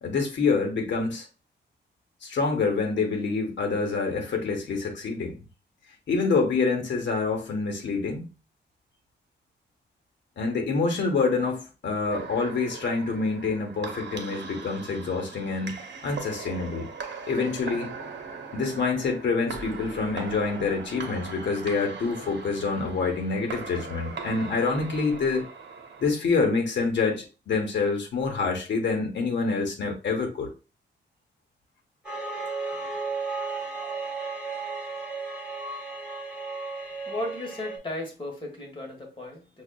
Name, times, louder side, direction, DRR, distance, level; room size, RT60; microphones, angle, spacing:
voice 1, 0.0-1.3 2.2-5.3 6.1-8.3 10.4-16.9 17.3-17.9 18.5-25.4 26.0-30.5, left 4 dB, 75° left, 0.9 m, -27 dB
sound 1, 12.1-26.1, right 5 dB, 70° right, 0.8 m, -40 dB
sound 2, 32.0-37.8, right 4 dB, 5° right, 1.4 m, -34 dB
voice 2, 37.0-39.6, left 1 dB, 25° left, 1.3 m, -35 dB
6.0 x 2.3 x 2.2 m
wide cardioid pair, 130°, 19 cm